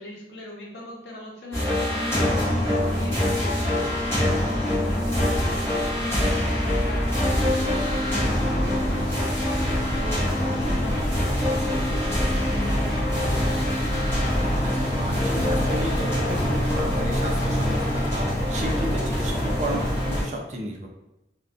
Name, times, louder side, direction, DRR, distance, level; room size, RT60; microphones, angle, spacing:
voice 1, 0.0-4.5 4.8-6.2 6.6-8.2 8.5-9.3 9.9-14.1, left 1 dB, 75° left, -3 dB, 0.8 m, -40 dB
sound 1, 1.5-20.2, left 1 dB, 15° left, 1.0 m, -24 dB
voice 2, 14.6-20.9, right 1 dB, 40° right, 0 dB, 0.4 m, -33 dB
2.4 x 2.2 x 2.5 m, 0.94 s
head